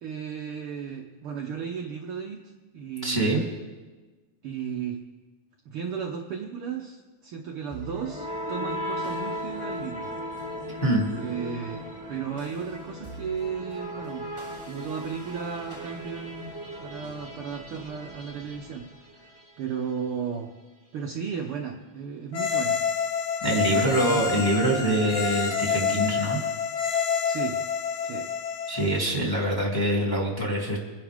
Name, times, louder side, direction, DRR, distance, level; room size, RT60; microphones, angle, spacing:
voice 1, 0.0-3.5 4.4-5.0 5.6-10.1 11.2-14.3 14.6-16.5 16.8-20.5 20.9-22.8 23.6-24.3 27.2-27.6 28.0-28.3 29.1-29.2, right 6 dB, 75° right, 1 dB, 1.2 m, -35 dB
voice 2, 3.0-3.5 10.8-11.1 23.4-26.4 28.7-30.8, right 1 dB, 5° left, -2 dB, 2.3 m, -24 dB
sound 1, 7.7-19.6, equal, 10° right, 1.9 m, -37 dB
sound 2, 22.3-29.0, left 6 dB, 85° left, 3.5 m, -28 dB
25.0 x 11.0 x 3.5 m, 1.3 s
omnidirectional pair, 3.7 m